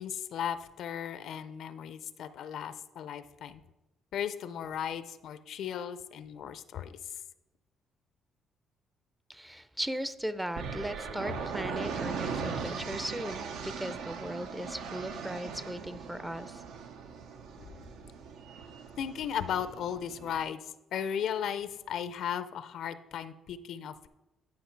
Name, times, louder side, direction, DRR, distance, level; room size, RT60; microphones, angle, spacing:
voice 1, 0.0-3.6 4.1-7.0 17.6-17.8 19.0-24.1, left 8 dB, 70° left, 12 dB, 0.5 m, -36 dB
voice 2, 9.3-16.6, right 1 dB, 5° right, 13 dB, 0.4 m, -38 dB
sound 1, 10.6-20.4, right 5 dB, 85° right, 0.7 m, -39 dB
10.5 x 5.2 x 4.5 m, 1.0 s
cardioid pair, 105°, 0 cm